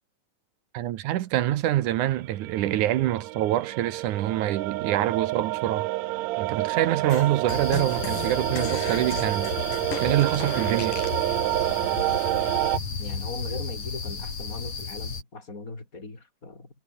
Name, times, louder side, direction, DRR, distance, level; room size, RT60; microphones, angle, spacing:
voice 1, 0.7-5.9 6.4-9.5 10.0-11.0, right 13 dB, 70° right, 2.4 m, -25 dB
sound 1, 2.4-12.8, right 18 dB, 90° right, 1.6 m, -28 dB
sound 2, 7.1-11.2, left 5 dB, 85° left, 6.2 m, -37 dB
sound 3, 7.5-15.2, left 5 dB, 50° left, 5.2 m, -34 dB
voice 2, 13.0-16.7, left 3 dB, 25° left, 5.5 m, -38 dB
omnidirectional pair, 3.8 m